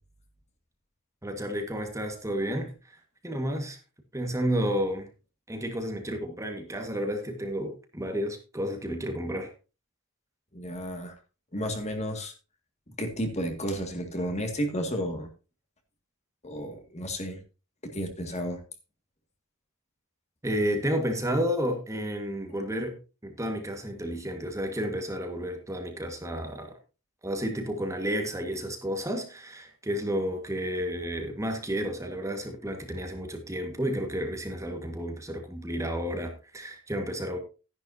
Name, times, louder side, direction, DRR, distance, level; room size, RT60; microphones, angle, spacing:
voice 1, 1.2-3.0 3.2-3.8 4.1-5.1 5.5-9.5 20.4-23.0 23.2-26.8 27.2-37.4, equal, 15° right, 4 dB, 1.7 m, -31 dB
voice 2, 10.5-11.1 11.5-12.3 13.0-15.3 16.4-17.4 17.8-18.6, equal, 30° left, 5 dB, 2.1 m, -32 dB
13.0 x 10.5 x 2.8 m, 0.32 s
head